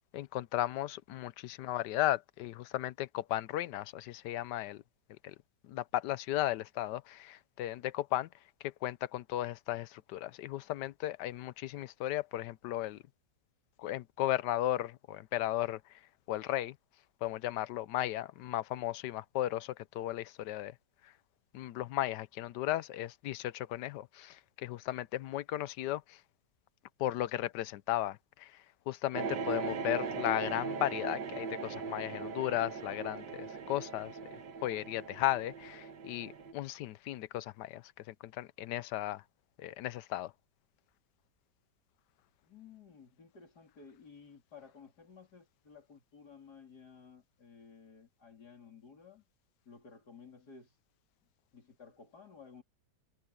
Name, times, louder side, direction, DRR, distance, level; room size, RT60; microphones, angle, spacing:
voice 1, 0.1-4.8 5.2-5.4 5.6-8.3 8.6-13.0 13.8-15.8 16.3-16.8 17.2-20.7 21.0-21.1 21.5-26.2 27.0-34.1 34.6-39.2 39.6-40.3, left 14 dB, 85° left, 1.2 m, -35 dB
sound 1, 29.1-36.5, right 5 dB, 75° right, 1.9 m, -39 dB
voice 2, 42.5-49.2 49.7-50.7 51.5-52.6, left 5 dB, 70° left, 3.9 m, -55 dB
omnidirectional pair, 1.8 m